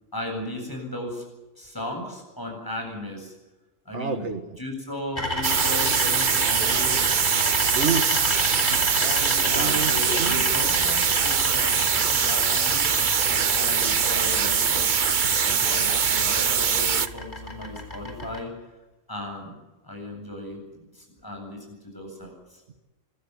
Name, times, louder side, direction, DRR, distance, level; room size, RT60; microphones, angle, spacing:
voice 1, 0.1-1.2 1.6-3.3 3.9-4.3 4.6-7.0 9.4-12.9 13.3-14.9 15.4-18.5 19.1-19.6 19.8-21.6 21.9-22.6, left 1 dB, 15° left, 2 dB, 8.0 m, -36 dB
voice 2, 3.9-4.4 7.8-8.2 8.7-10.4 15.2-15.3, right 6 dB, 60° right, 8 dB, 2.0 m, -30 dB
sound 1, 5.2-18.4, left 1 dB, 35° left, 4.1 m, -32 dB
sound 2, 5.4-17.1, right 7 dB, 40° right, 0.9 m, -22 dB
25.5 x 15.0 x 9.6 m, 1.1 s
omnidirectional pair, 1.4 m